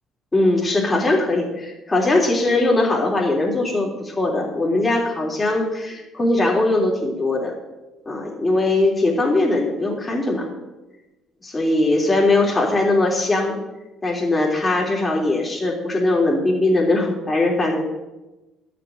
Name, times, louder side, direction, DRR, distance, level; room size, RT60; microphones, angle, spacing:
voice 1, 0.3-7.5 8.0-10.5 11.4-13.6 14.0-17.8, left 2 dB, 20° left, -1 dB, 3.4 m, -20 dB
11.5 x 6.9 x 7.8 m, 1.0 s
cardioid pair, 90°, 0 cm